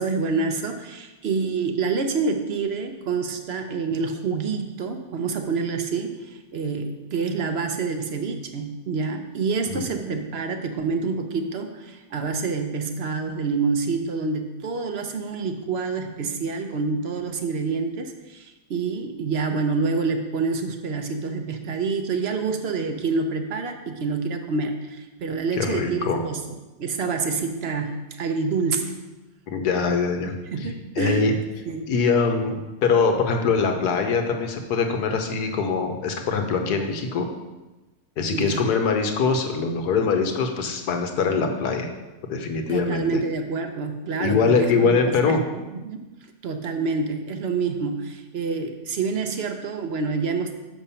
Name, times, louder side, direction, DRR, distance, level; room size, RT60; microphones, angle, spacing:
voice 1, 0.0-28.9 30.5-31.3 31.7-31.9 38.3-38.7 42.7-46.0 46.4-50.5, right 4 dB, 55° right, 6 dB, 0.8 m, -27 dB
voice 2, 25.6-26.2 29.5-30.3 31.0-31.3 31.9-37.2 38.2-41.9 42.3-43.0 44.2-45.4, left 5 dB, 85° left, 5 dB, 1.5 m, -23 dB
7.0 x 5.7 x 5.6 m, 1.1 s
omnidirectional pair, 1.7 m